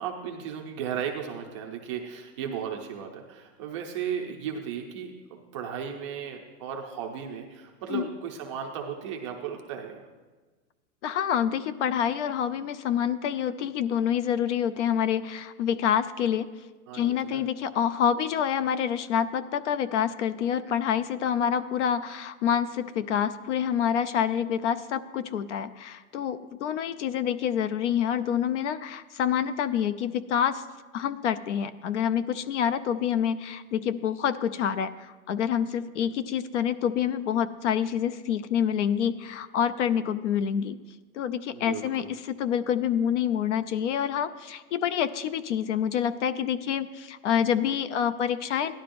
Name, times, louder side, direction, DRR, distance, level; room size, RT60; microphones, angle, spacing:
voice 1, 0.0-10.1 16.9-17.4 41.5-42.1, right 7 dB, 20° right, 1 dB, 0.4 m, -35 dB
voice 2, 11.0-16.5 16.9-30.6 30.9-40.8 41.1-48.7, left 8 dB, 50° left, 14 dB, 0.5 m, -27 dB
16.5 x 11.5 x 2.6 m, 1.3 s
supercardioid pair, 160°, 46 cm